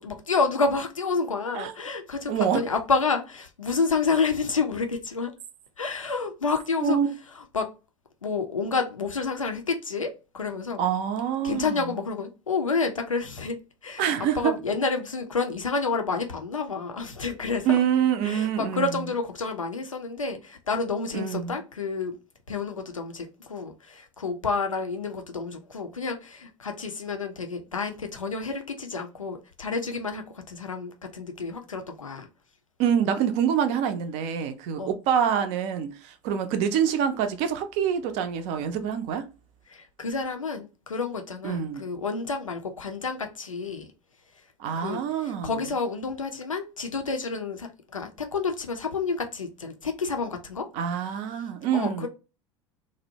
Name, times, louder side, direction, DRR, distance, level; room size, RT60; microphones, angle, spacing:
voice 1, 0.0-5.3 5.8-7.0 7.5-7.7 8.2-10.8 11.4-13.6 13.8-17.8 18.2-22.2 22.5-32.3 34.8-34.9 39.7-43.9 44.8-50.7 51.7-52.1, left 4 dB, 85° left, 0.4 m, -29 dB
voice 2, 2.3-2.7 6.8-7.1 10.8-11.9 14.0-14.6 17.6-19.0 21.1-21.6 32.8-39.3 41.4-41.8 44.6-45.6 50.7-52.1, right 8 dB, 45° right, 0.4 m, -26 dB
2.6 x 2.0 x 2.6 m
figure-of-eight pair, 70°, 16 cm